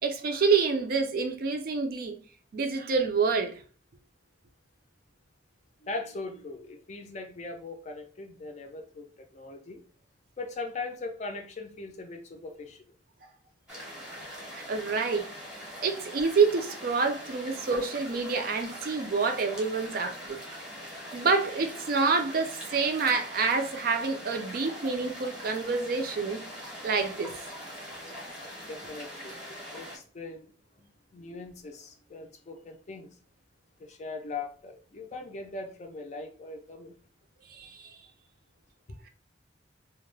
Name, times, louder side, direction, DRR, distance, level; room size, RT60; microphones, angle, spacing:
voice 1, 0.0-2.2 2.5-3.6 14.5-15.3 15.8-20.4 21.1-26.4 26.8-27.3 37.5-38.0, right 4 dB, 50° right, 0.4 m, -27 dB
voice 2, 5.8-9.1 9.3-9.8 10.4-12.8 28.7-29.4 29.7-30.5 30.8-33.1 33.8-36.9 38.9-39.0, left 3 dB, 40° left, 0.4 m, -40 dB
sound 1, 13.7-30.0, equal, 5° right, 0.7 m, -42 dB
2.2 x 2.0 x 3.1 m
head